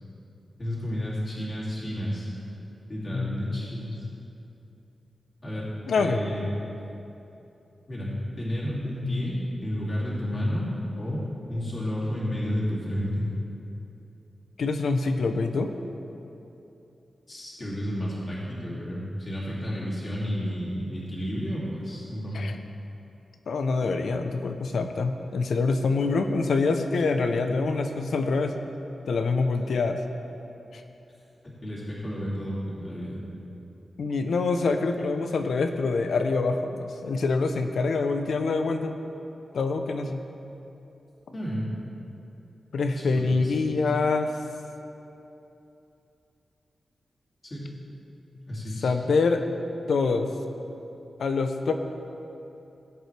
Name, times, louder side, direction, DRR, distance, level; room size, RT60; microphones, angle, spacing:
voice 1, 0.6-2.3 2.9-4.0 5.4-6.4 7.9-10.7 11.0-11.2 11.5-13.2 17.3-22.4 31.6-33.2 41.3-41.7 43.0-43.5 47.4-47.7 48.5-48.9, equal, 30° left, -7 dB, 2.6 m, -31 dB
voice 2, 3.1-3.6 5.9-6.2 14.6-15.7 22.3-22.6 23.5-28.5 29.1-30.0 34.0-38.9 39.5-40.2 42.7-44.3 48.8-49.4 49.9-50.3 51.2-51.7, left 4 dB, 90° left, 6 dB, 0.7 m, -25 dB
17.0 x 7.9 x 3.4 m, 2.8 s
wide cardioid pair, 155°, 0 cm